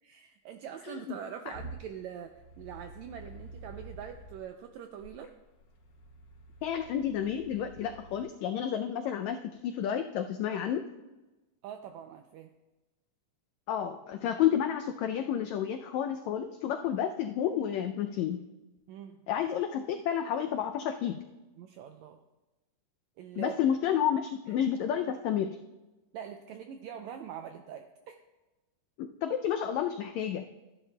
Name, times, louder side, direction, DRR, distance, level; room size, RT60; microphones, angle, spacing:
voice 1, 0.0-5.3 11.6-12.5 18.9-19.2 21.6-22.2 23.2-23.5 24.5-24.6 26.1-28.2, right 8 dB, 85° right, 6 dB, 1.6 m, -43 dB
sound 1, 1.5-4.4 5.0-8.2, right 2 dB, 70° left, 3.2 m, -49 dB
voice 2, 6.6-10.8 13.7-18.4 19.3-21.2 23.4-25.6 29.0-30.5, left 9 dB, 90° left, 6 dB, 1.6 m, -30 dB
14.5 x 10.5 x 2.2 m, 1.1 s
omnidirectional pair, 3.7 m